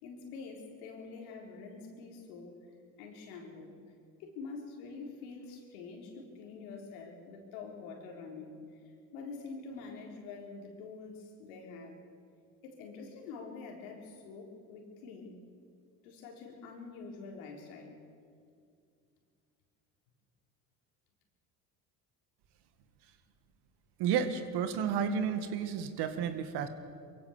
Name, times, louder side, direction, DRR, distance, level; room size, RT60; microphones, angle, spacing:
voice 1, 0.0-2.6 3.0-3.7 4.2-8.8 9.1-12.0 12.6-15.3 16.0-18.0, left 4 dB, 80° left, 1 dB, 4.2 m, -46 dB
voice 2, 24.0-26.7, right 7 dB, 65° right, 10 dB, 2.1 m, -31 dB
23.0 x 16.0 x 7.4 m, 2.3 s
supercardioid pair, 80°, 42 cm